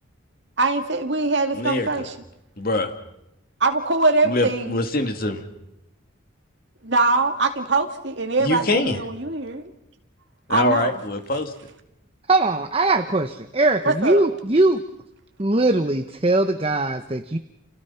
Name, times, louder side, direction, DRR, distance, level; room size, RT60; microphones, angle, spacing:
voice 1, 0.6-2.1 3.6-4.8 6.8-9.7 10.5-11.0 13.8-14.2, right 3 dB, 55° right, 4 dB, 2.5 m, -22 dB
voice 2, 1.5-2.1 2.6-2.9 4.2-5.4 8.4-9.0 10.5-11.5, left 2 dB, 45° left, 6 dB, 2.5 m, -24 dB
voice 3, 12.3-14.8 15.4-17.4, right 2 dB, 25° right, 7 dB, 0.9 m, -20 dB
30.0 x 28.5 x 5.8 m, 0.83 s
head